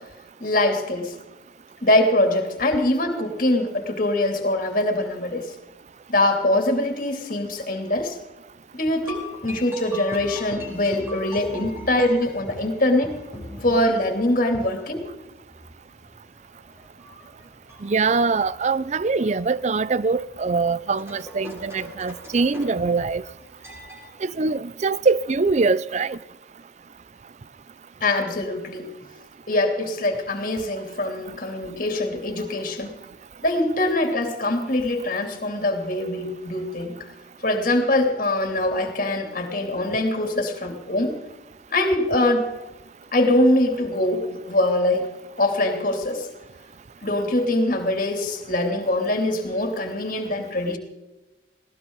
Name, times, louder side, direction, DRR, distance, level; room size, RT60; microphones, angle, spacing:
voice 1, 0.4-1.1 1.8-5.5 6.1-8.2 8.7-13.2 13.6-15.0 28.0-28.9 29.5-32.9 33.4-36.9 37.4-41.1 41.7-42.5 43.1-45.1 45.4-46.3 47.0-50.8, left 1 dB, 50° left, 3.0 m, -23 dB
sound 1, 9.0-24.1, left 1 dB, 15° right, 6.1 m, -41 dB
voice 2, 17.8-23.2 24.2-26.2, right 4 dB, 40° right, 0.5 m, -23 dB
20.0 x 18.5 x 4.0 m
head